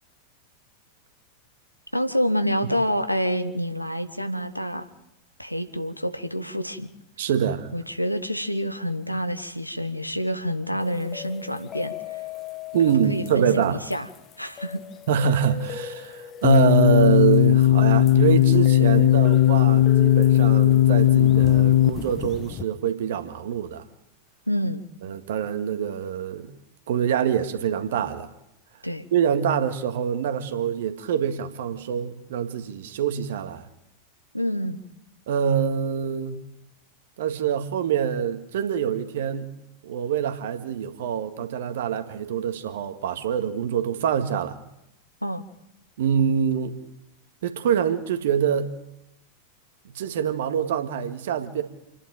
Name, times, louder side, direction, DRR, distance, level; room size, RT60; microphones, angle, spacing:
voice 1, 1.9-4.9 5.4-6.9 7.7-12.2 13.1-14.1 14.4-14.8 24.5-24.8 28.8-29.1 34.3-34.8 45.2-45.4, equal, 90° left, 1.4 m, -27 dB
voice 2, 7.2-7.7 12.7-13.8 15.1-23.8 25.0-26.5 26.9-28.3 29.1-33.7 35.3-36.4 37.2-39.5 39.8-44.6 46.0-46.8 47.4-48.7 49.9-51.6, right 8 dB, 55° right, 1.8 m, -25 dB
sound 1, 10.8-22.6, left 8 dB, 30° left, 1.2 m, -38 dB
sound 2, 16.4-21.9, left 13 dB, 55° left, 0.7 m, -17 dB
28.0 x 11.0 x 9.3 m
figure-of-eight pair, 90°, 0 cm